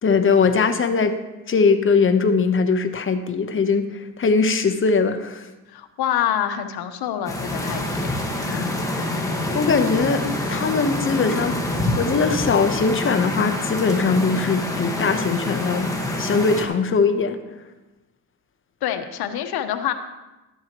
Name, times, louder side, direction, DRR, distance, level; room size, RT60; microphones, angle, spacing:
voice 1, 0.0-1.2 1.5-5.5 8.4-17.4, left 4 dB, 35° left, 8 dB, 1.0 m, -21 dB
voice 2, 5.7-8.0 18.8-19.9, left 10 dB, 75° left, 7 dB, 1.1 m, -26 dB
sound 1, 7.3-16.7, left 1 dB, 10° left, 1.5 m, -26 dB
12.5 x 11.0 x 3.0 m, 1.1 s
cardioid pair, 100°, 38 cm